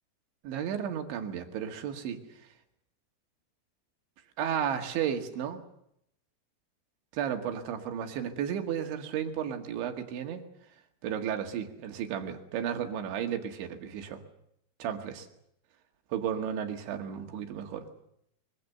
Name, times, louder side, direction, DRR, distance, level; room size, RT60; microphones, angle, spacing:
voice 1, 0.4-2.2 4.4-5.6 7.1-10.5 11.0-14.2 14.8-15.3 16.1-17.9, right 8 dB, 70° right, 4 dB, 4.2 m, -33 dB
25.0 x 24.0 x 6.9 m, 0.74 s
omnidirectional pair, 5.7 m